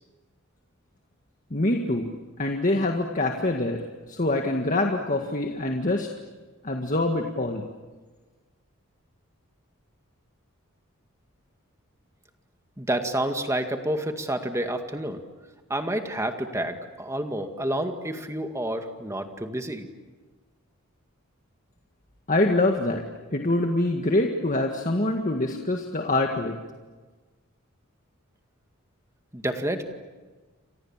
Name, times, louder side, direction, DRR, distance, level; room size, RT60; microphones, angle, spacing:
voice 1, 1.5-2.1 2.4-6.1 6.6-7.6 22.3-23.0 23.3-26.6, left 2 dB, 35° left, 3 dB, 1.8 m, -25 dB
voice 2, 12.8-15.2 15.7-19.9 29.3-29.8, right 1 dB, 15° right, 6 dB, 2.1 m, -29 dB
29.5 x 26.0 x 7.4 m, 1.3 s
head